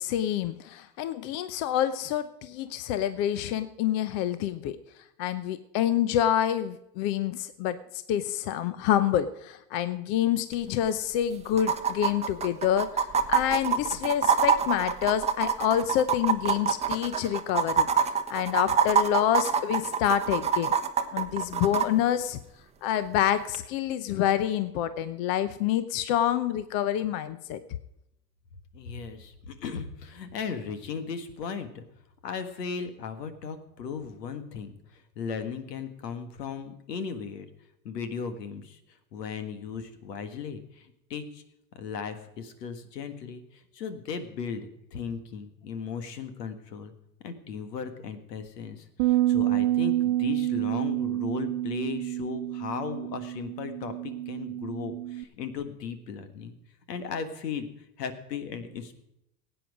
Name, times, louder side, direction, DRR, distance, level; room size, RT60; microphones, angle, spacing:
voice 1, 0.0-4.8 5.2-7.8 8.1-20.7 21.1-22.4 22.8-27.6, left 10 dB, 50° left, 13 dB, 0.8 m, -27 dB
sound 1, 10.5-10.6 10.8-10.9 11.6-21.9 23.5-23.6, right 6 dB, 15° right, 0.8 m, -25 dB
voice 2, 28.7-31.8 32.2-37.5 37.8-38.8 39.1-41.4 41.7-46.9 47.2-56.5 56.9-57.7 58.0-59.0, left 6 dB, 85° left, 9 dB, 1.7 m, -36 dB
Bass guitar, 49.0-55.2, right 14 dB, 55° right, 0.8 m, -28 dB
16.5 x 9.0 x 4.9 m, 0.81 s
hypercardioid pair, 110°, 47 cm